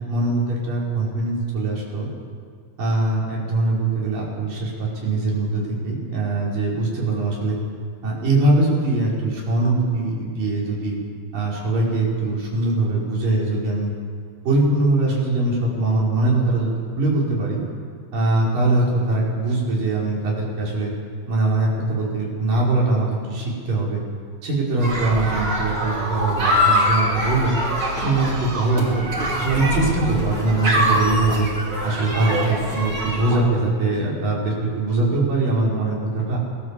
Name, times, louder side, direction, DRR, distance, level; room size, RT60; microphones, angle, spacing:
voice 1, 0.0-2.1 2.8-7.6 8.0-11.0 11.3-13.9 14.5-17.6 18.1-20.9 21.3-24.0 24.4-27.6 28.0-29.1 29.4-31.5 31.8-36.4, right 2 dB, 85° right, -4 dB, 7.1 m, -22 dB
sound 1, 24.8-33.4, equal, 35° right, 5.1 m, -24 dB
27.0 x 20.0 x 7.6 m, 2.1 s
omnidirectional pair, 3.8 m